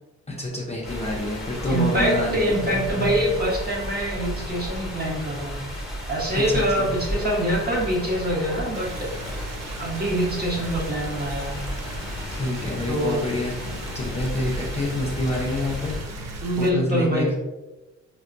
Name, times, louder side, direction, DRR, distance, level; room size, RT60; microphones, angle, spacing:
voice 1, 0.4-3.1 6.3-6.9 12.3-13.6 13.9-16.0 16.6-17.3, left 1 dB, 20° left, -3 dB, 0.6 m, -27 dB
sound 1, 0.8-16.5, left 3 dB, 75° left, 0.5 m, -40 dB
sound 2, 0.8-16.0, equal, ahead, 1.1 m, -35 dB
voice 2, 1.7-5.6 6.1-8.9 9.8-11.6 12.9-13.2 16.4-17.4, right 1 dB, 30° right, -3 dB, 1.1 m, -24 dB
sound 3, 8.7-16.7, right 4 dB, 60° right, 0.6 m, -39 dB
4.0 x 2.2 x 2.5 m, 1.1 s
cardioid pair, 90°, 30 cm